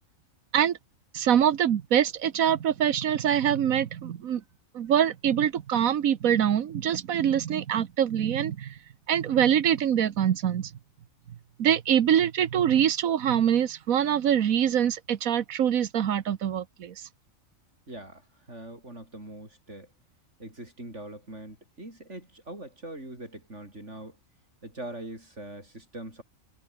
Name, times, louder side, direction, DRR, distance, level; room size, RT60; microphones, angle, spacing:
voice 1, 1.1-4.4 4.7-8.8 9.1-10.7 11.6-16.9, right 9 dB, 80° right, 1.4 m, -24 dB
voice 2, 17.9-19.9 20.4-24.2 24.6-26.2, right 1 dB, 55° right, 7.2 m, -42 dB
omnidirectional pair, 1.4 m